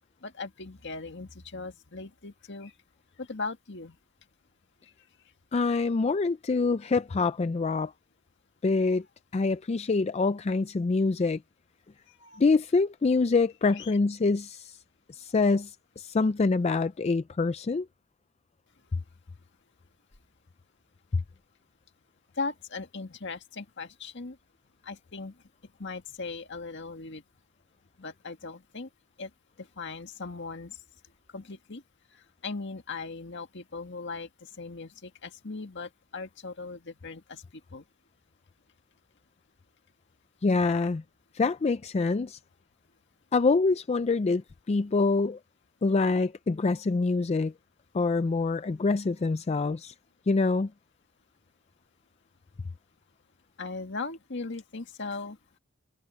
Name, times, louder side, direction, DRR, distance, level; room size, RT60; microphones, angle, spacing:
voice 1, 0.2-2.7 3.2-4.0 8.9-9.0 12.2-12.4 13.8-13.9 22.4-24.4 24.8-25.3 25.8-27.2 28.0-28.9 29.2-29.3 29.6-30.8 31.3-31.8 32.4-37.4 37.7-37.8 49.5-49.7 53.6-55.4, left 3 dB, 60° left, 1.8 m, -38 dB
voice 2, 5.5-7.9 8.6-9.0 9.3-11.4 12.4-14.8 15.1-17.9 40.4-41.0 41.3-42.4 43.3-44.4 44.7-45.4 45.8-47.5 47.9-49.9 50.3-50.7, left 3 dB, 30° left, 0.4 m, -25 dB
head